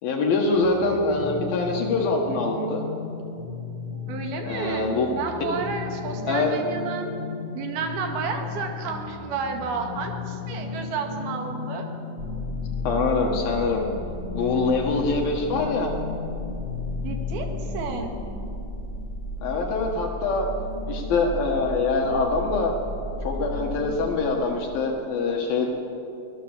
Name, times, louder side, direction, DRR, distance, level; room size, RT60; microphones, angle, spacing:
voice 1, 0.0-2.9 4.5-5.1 6.2-6.5 12.8-13.8 14.3-15.9 19.4-20.5 20.9-22.7 23.2-25.7, left 3 dB, 75° left, 0 dB, 3.4 m, -24 dB
sound 1, 0.6-18.2, left 5 dB, 35° right, 5.1 m, -35 dB
voice 2, 4.1-4.8 5.2-7.1 7.5-11.9 17.0-18.1, right 5 dB, 85° right, 4 dB, 3.9 m, -31 dB
sound 2, 12.2-24.3, left 1 dB, 35° left, 4.3 m, -34 dB
24.5 x 18.5 x 7.3 m, 2.8 s
omnidirectional pair, 4.3 m